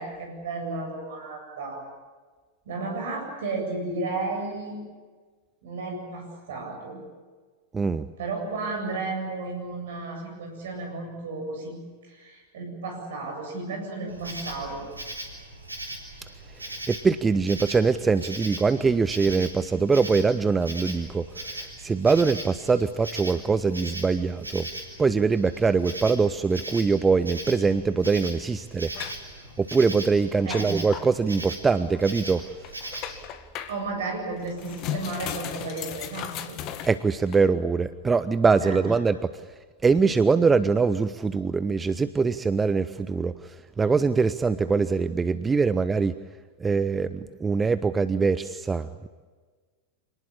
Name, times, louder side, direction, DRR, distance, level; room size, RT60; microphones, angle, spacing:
voice 1, 0.0-1.8 2.7-4.8 5.6-7.0 8.2-11.8 12.0-14.9 30.4-30.7 33.7-36.6 38.6-38.8, right 3 dB, 60° right, 3 dB, 7.9 m, -33 dB
voice 2, 7.7-8.1 16.9-24.7 25.0-28.9 29.6-32.4 36.9-39.4 39.8-46.1 46.6-49.1, right 4 dB, 15° right, 14 dB, 0.7 m, -23 dB
Insect, 14.1-33.3, right 1 dB, 80° right, 3.6 m, -39 dB
sound 1, 28.9-31.1 31.9-32.0 32.4-33.8 34.3-37.4, left 10 dB, 40° left, 1.8 m, -36 dB
26.5 x 19.0 x 8.6 m, 1.4 s
figure-of-eight pair, 90°, 0 cm